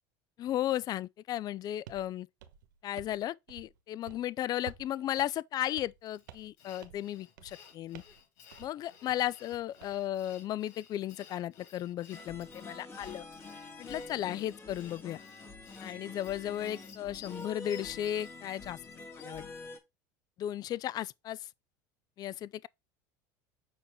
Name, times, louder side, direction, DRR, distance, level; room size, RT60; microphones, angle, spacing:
voice 1, 0.4-2.3 2.8-8.0 8.6-13.3 13.8-15.2 15.8-18.8 19.2-19.4 20.4-21.5 22.2-22.7, left 12 dB, 40° left, 0.4 m, -35 dB
sound 1, 1.9-2.1 2.4-3.2 3.5-3.8 4.0-4.2 4.7-4.9 5.2-5.3 5.8-6.0 6.3-6.5 6.8-7.1 7.4-7.6 7.9-8.2 8.5-8.7 9.1-9.9, right 10 dB, 90° right, 1.0 m, -51 dB
Sawing, 6.1-19.6, left 7 dB, 75° left, 4.9 m, -56 dB
sound 2, 12.1-19.8, left 3 dB, 25° left, 2.2 m, -46 dB
6.9 x 4.8 x 3.6 m
supercardioid pair, 110°, 10 cm